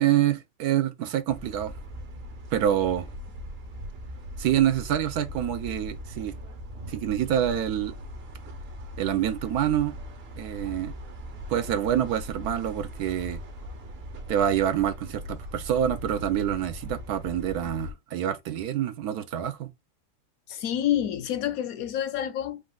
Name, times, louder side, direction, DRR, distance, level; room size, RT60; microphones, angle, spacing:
voice 1, 0.0-1.8 2.5-3.1 4.4-6.3 6.9-7.9 9.0-9.9 10.4-10.9 11.5-13.4 14.3-19.7, right 10 dB, 80° right, 1.2 m, -26 dB
sound 1, 1.3-17.9, equal, 50° right, 0.9 m, -40 dB
voice 2, 20.5-22.6, left 11 dB, 75° left, 1.0 m, -28 dB
5.0 x 2.4 x 3.5 m
omnidirectional pair, 1.6 m